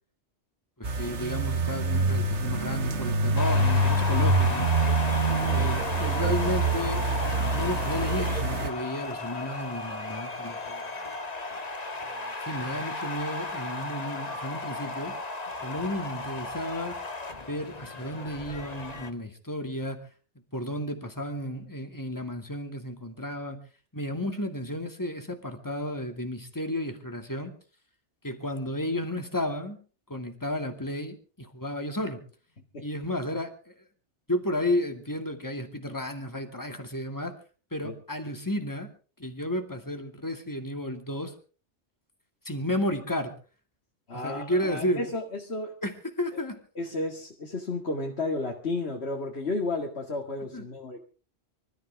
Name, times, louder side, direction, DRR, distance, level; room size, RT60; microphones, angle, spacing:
voice 1, 0.8-4.7 5.5-7.0 7.5-10.9 12.1-15.1 15.6-17.0 17.4-20.0 20.5-23.6 23.9-27.5 28.2-29.8 30.1-32.2 32.8-33.7 34.3-37.4 37.7-38.9 39.2-41.3 42.4-43.3 44.1-45.1 45.8-46.6 50.5-50.6, left 1 dB, 15° left, 5 dB, 2.4 m, -32 dB
sound 1, 0.8-8.7, right 2 dB, 70° right, 1.7 m, -26 dB
sound 2, 3.4-19.1, left 3 dB, 35° left, 1.5 m, -35 dB
voice 2, 5.2-5.7 32.7-32.9 37.8-37.9 44.1-45.7 46.8-51.0, left 2 dB, 60° left, 1 dB, 2.3 m, -33 dB
25.5 x 14.0 x 3.6 m, 0.38 s
omnidirectional pair, 1.2 m